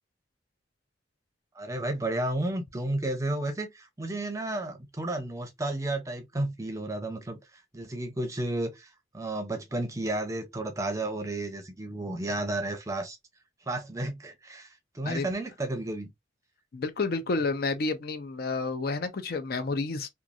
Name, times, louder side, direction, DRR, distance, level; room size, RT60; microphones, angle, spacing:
voice 1, 1.5-13.2 13.7-16.1, right 1 dB, 15° right, 0.6 m, -32 dB
voice 2, 16.7-20.1, left 3 dB, 55° left, 0.4 m, -30 dB
2.9 x 2.3 x 2.4 m
head